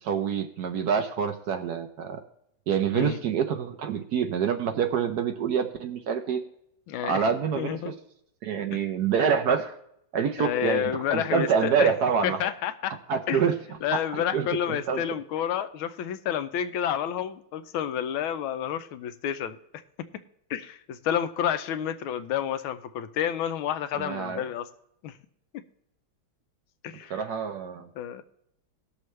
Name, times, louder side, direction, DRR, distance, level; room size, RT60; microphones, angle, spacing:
voice 1, 0.0-2.2 2.7-6.4 7.0-7.9 8.4-9.8 10.1-12.4 13.1-13.6 14.1-15.0 24.0-24.4 27.1-27.9, right 7 dB, 65° right, 6 dB, 1.0 m, -26 dB
voice 2, 6.9-7.3 7.6-7.9 10.4-11.9 12.2-12.9 13.3-13.4 13.8-19.6 20.5-24.7 25.0-25.2 25.5-25.6 26.8-27.1 28.0-28.2, left 9 dB, 85° left, 10 dB, 1.5 m, -29 dB
18.5 x 6.6 x 3.2 m, 0.77 s
omnidirectional pair, 2.2 m